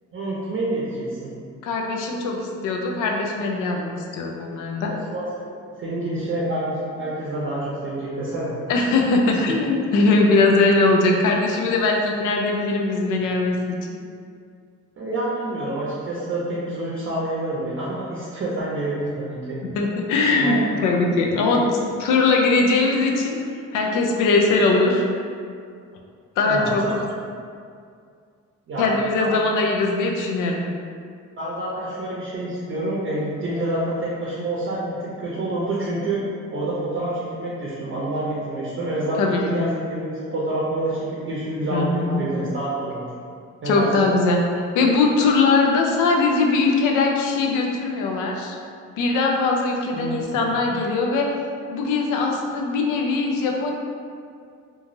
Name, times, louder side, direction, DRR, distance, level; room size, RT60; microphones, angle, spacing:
voice 1, 0.1-1.3 4.8-8.5 15.0-19.6 20.4-20.7 26.4-26.7 28.7-28.9 29.2-29.4 31.4-36.2 36.5-43.1 43.6-44.1 49.9-50.4, right 1 dB, 40° right, -6 dB, 0.6 m, -27 dB
voice 2, 1.6-4.9 8.7-13.8 19.7-23.4 23.7-25.0 26.4-26.8 28.8-30.6 39.2-39.7 41.7-42.3 43.6-44.4 44.7-48.6 49.0-51.3 51.7-53.7, left 3 dB, 90° left, 1 dB, 0.5 m, -21 dB
3.0 x 2.3 x 2.6 m, 2.3 s
cardioid pair, 90°, 30 cm